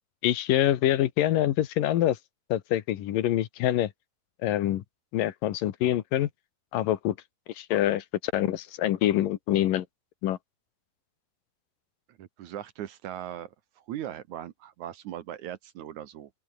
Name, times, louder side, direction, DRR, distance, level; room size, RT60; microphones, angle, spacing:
voice 1, 0.2-2.2 2.5-3.9 4.4-4.8 5.1-6.3 6.7-7.2 7.6-9.9 10.2-10.4, left 12 dB, 75° left, 2.9 m, -25 dB
voice 2, 12.1-13.5 13.9-16.3, right 11 dB, 65° right, 2.3 m, -39 dB
open air
omnidirectional pair, 4.0 m